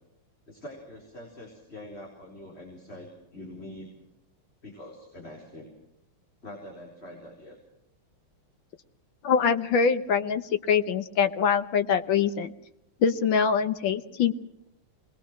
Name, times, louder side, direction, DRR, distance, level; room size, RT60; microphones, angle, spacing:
voice 1, 0.5-3.9 4.6-5.7 6.4-7.6, left 1 dB, 25° left, -1 dB, 4.2 m, -44 dB
voice 2, 9.2-12.5 13.0-14.3, left 6 dB, 65° left, 10 dB, 1.7 m, -24 dB
26.5 x 20.5 x 6.1 m, 0.84 s
omnidirectional pair, 2.4 m